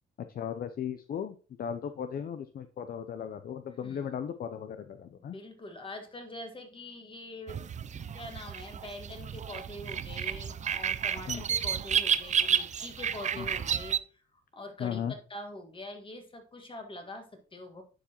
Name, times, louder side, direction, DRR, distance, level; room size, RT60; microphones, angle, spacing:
voice 1, 0.3-5.3 11.3-11.4 13.4-13.5 14.8-15.1, left 8 dB, 50° left, 9 dB, 0.5 m, -36 dB
voice 2, 3.8-4.1 5.2-7.6 8.1-14.0 14.3-17.8, left 1 dB, 25° left, 5 dB, 1.7 m, -44 dB
sound 1, 7.5-14.0, right 8 dB, 35° right, 0.4 m, -31 dB
10.5 x 4.8 x 2.9 m, 0.37 s
cardioid pair, 90°, 20 cm